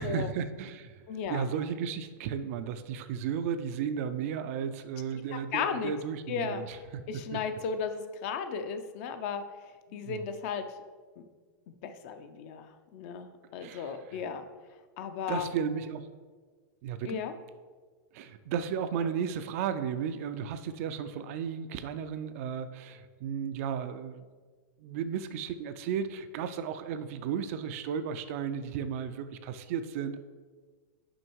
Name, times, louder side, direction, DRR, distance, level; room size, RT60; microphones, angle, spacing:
voice 1, 0.0-1.0 1.3-7.4 9.9-10.2 13.6-14.2 15.3-16.1 16.8-17.3 18.1-24.2 24.8-30.2, right 7 dB, 40° right, 10 dB, 0.4 m, -34 dB
voice 2, 1.1-1.4 5.1-5.9 6.3-6.6 7.1-9.4 9.9-10.6 11.2-11.3 11.8-14.4 15.0-15.5 17.0-17.3, left 6 dB, 40° left, 9 dB, 0.5 m, -35 dB
6.2 x 5.3 x 4.6 m, 1.5 s
supercardioid pair, 165°, 11 cm